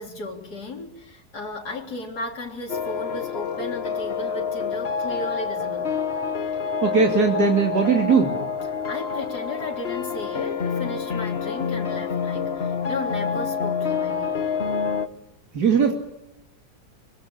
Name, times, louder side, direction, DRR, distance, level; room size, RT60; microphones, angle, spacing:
voice 1, 0.0-5.9 8.9-14.5, left 2 dB, 85° left, 0 dB, 4.1 m, -35 dB
sound 1, 2.7-15.1, left 6 dB, 45° left, 1.5 m, -27 dB
voice 2, 6.8-8.4 15.5-15.9, right 5 dB, 85° right, 2 dB, 3.2 m, -19 dB
26.0 x 23.5 x 8.7 m, 0.85 s
omnidirectional pair, 1.7 m